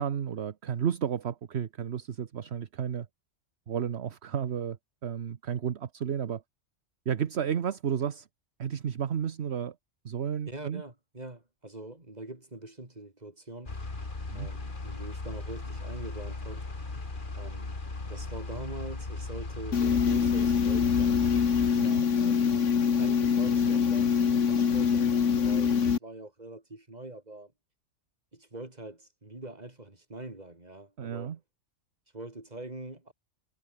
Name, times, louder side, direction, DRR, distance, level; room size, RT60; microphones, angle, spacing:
voice 1, 0.0-3.1 3.7-4.8 5.0-6.4 7.1-8.3 8.6-9.7 10.0-10.8 14.3-14.5 21.7-22.1 31.0-31.4, right 8 dB, 65° right, 1.2 m, -32 dB
voice 2, 10.5-13.7 14.3-16.7 17.3-17.8 18.1-21.4 22.2-22.6 23.0-27.5 28.3-31.4 32.1-33.1, right 2 dB, 35° right, 3.8 m, -43 dB
sound 1, 13.7-21.7, left 3 dB, 45° left, 2.5 m, -37 dB
sound 2, 19.7-26.0, left 6 dB, 85° left, 1.8 m, -24 dB
omnidirectional pair, 1.2 m